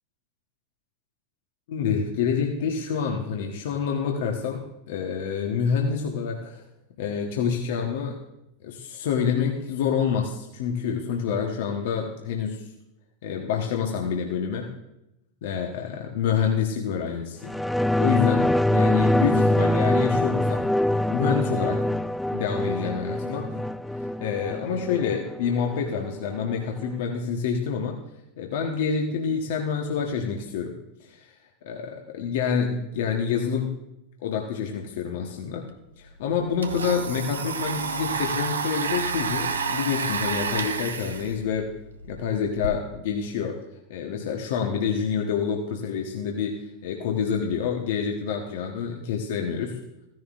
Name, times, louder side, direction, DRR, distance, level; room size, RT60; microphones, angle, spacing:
voice 1, 1.7-6.6 7.0-8.2 8.6-12.7 13.2-14.7 15.4-17.5 18.0-20.7 21.1-21.9 22.3-23.6 24.0-28.0 28.4-31.3 31.6-33.7 34.2-35.6 36.0-41.7 42.1-43.6 43.9-49.8, left 6 dB, 60° left, 1 dB, 1.2 m, -27 dB
sound 1, 17.5-26.5 26.8-26.9, left 1 dB, 5° left, 0.3 m, -24 dB
Domestic sounds home sounds, 35.7-35.8 36.1-42.7, right 5 dB, 80° right, 0.8 m, -30 dB
15.5 x 11.0 x 2.5 m, 0.88 s
figure-of-eight pair, 90°, 0 cm